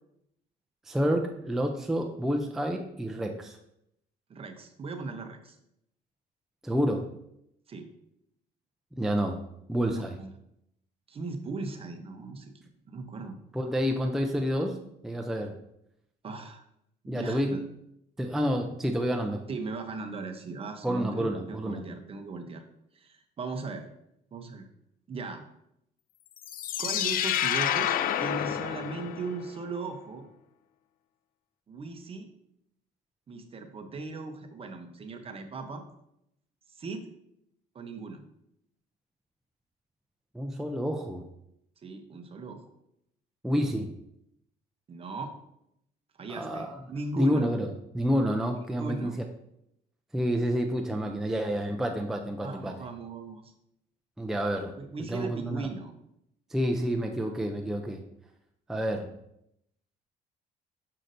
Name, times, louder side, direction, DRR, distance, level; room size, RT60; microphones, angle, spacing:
voice 1, 0.9-3.6 6.6-7.1 9.0-9.4 9.7-10.2 13.5-14.8 15.0-15.5 17.1-17.6 18.2-19.4 20.8-21.8 40.3-41.2 43.4-43.9 46.3-46.8 47.2-49.1 50.1-52.7 54.2-54.8 55.1-55.6 56.5-58.0 58.7-59.1, equal, ahead, 3 dB, 0.5 m, -29 dB
voice 2, 4.3-5.6 7.7-7.9 9.9-10.3 11.1-13.4 16.2-16.7 17.0-17.6 19.5-22.6 22.9-23.9 24.3-24.7 25.1-25.4 26.8-30.3 31.7-32.3 33.3-35.8 36.7-37.1 37.7-38.2 41.8-42.6 44.9-45.3 46.2-47.5 48.7-49.2 52.4-53.5 54.8-55.9, right 3 dB, 35° right, 6 dB, 0.8 m, -38 dB
sound 1, 26.4-29.5, left 10 dB, 60° left, 0.4 m, -29 dB
6.5 x 5.7 x 2.6 m, 0.78 s
cardioid pair, 110°, 17 cm